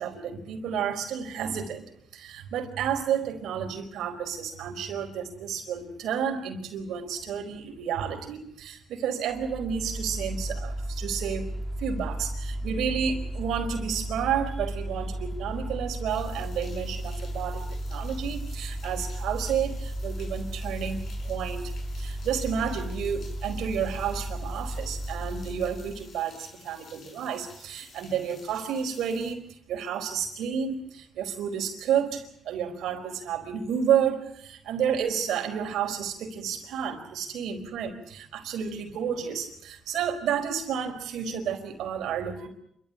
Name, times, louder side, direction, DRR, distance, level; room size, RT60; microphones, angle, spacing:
voice 1, 0.0-11.5 11.8-21.7 22.0-42.5, right 8 dB, 80° right, 4 dB, 4.6 m, -31 dB
Mechanical fan, 9.3-26.2, right 1 dB, 10° left, 3.0 m, -34 dB
sound 1, 16.1-29.3, left 4 dB, 60° left, 6.0 m, -53 dB
28.0 x 13.5 x 9.8 m, 0.74 s
cardioid pair, 90°, 0 cm